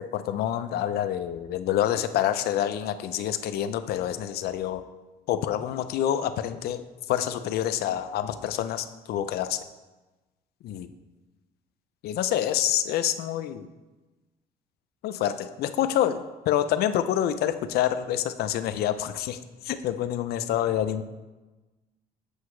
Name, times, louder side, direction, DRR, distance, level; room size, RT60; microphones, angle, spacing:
voice 1, 0.1-4.8 5.3-9.6 10.6-10.9 12.0-13.7 15.0-19.4 19.6-21.0, left 11 dB, 70° left, 11 dB, 0.5 m, -27 dB
8.0 x 5.6 x 3.1 m, 1.2 s
cardioid pair, 110°, 17 cm